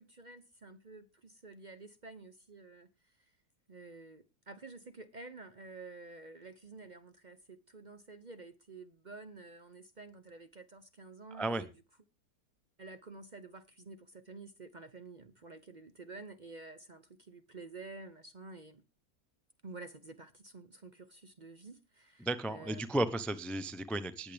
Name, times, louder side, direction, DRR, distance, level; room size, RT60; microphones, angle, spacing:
voice 1, 0.0-3.4 3.7-11.7 12.8-18.8 19.6-22.8, right 3 dB, 40° right, 0.7 m, -50 dB
voice 2, 22.2-24.3, right 1 dB, ahead, 0.4 m, -34 dB
19.0 x 8.2 x 3.4 m
omnidirectional pair, 1.7 m